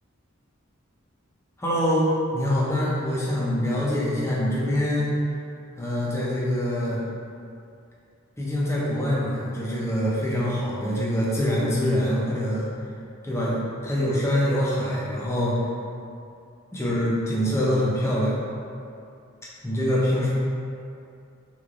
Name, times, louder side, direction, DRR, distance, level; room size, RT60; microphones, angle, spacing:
voice 1, 1.6-5.1 5.8-7.0 8.4-12.7 13.2-15.6 16.7-18.4 19.6-20.3, equal, 15° left, -7 dB, 0.5 m, -24 dB
3.4 x 3.2 x 2.4 m, 2.5 s
head